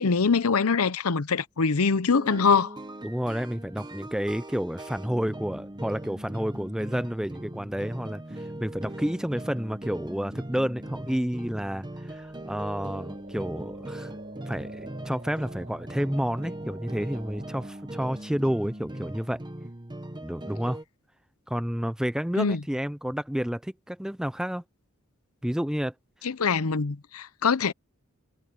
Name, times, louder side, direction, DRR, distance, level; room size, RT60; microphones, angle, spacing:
voice 1, 0.0-2.8 22.4-22.6 26.2-27.7, left 5 dB, 75° left, 0.8 m, -23 dB
sound 1, 2.1-20.8, right 1 dB, 20° right, 1.1 m, -40 dB
voice 2, 3.0-14.2 14.5-19.4 20.2-20.8 21.5-24.6 25.4-25.9, equal, 5° right, 0.5 m, -30 dB
Subsonic Wave, 10.9-18.1, right 3 dB, 40° right, 6.9 m, -50 dB
head